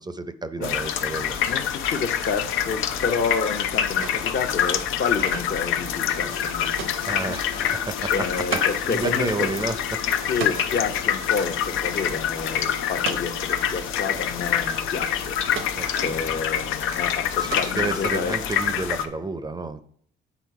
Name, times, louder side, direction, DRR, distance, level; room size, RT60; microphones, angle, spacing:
voice 1, 0.0-1.4 7.1-8.1 8.9-10.0 15.8-16.2 17.4-19.8, right 3 dB, 20° right, 11 dB, 0.5 m, -30 dB
sound 1, 0.6-19.1, left 9 dB, 90° left, 0.7 m, -26 dB
voice 2, 1.3-9.5 10.3-18.3, left 5 dB, 55° left, 7 dB, 0.8 m, -30 dB
sound 2, 2.1-8.8 9.1-9.2 9.5-10.8 11.5-11.8 12.1-12.2 12.9-13.6 14.4-14.5 14.7-15.9 16.6-17.0 17.3-18.2, right 6 dB, 80° right, 0.8 m, -38 dB
sound 3, 5.7-16.4 16.7-16.8, left 6 dB, 25° left, 0.7 m, -42 dB
8.1 x 4.0 x 4.7 m, 0.63 s
cardioid pair, 90°, 20 cm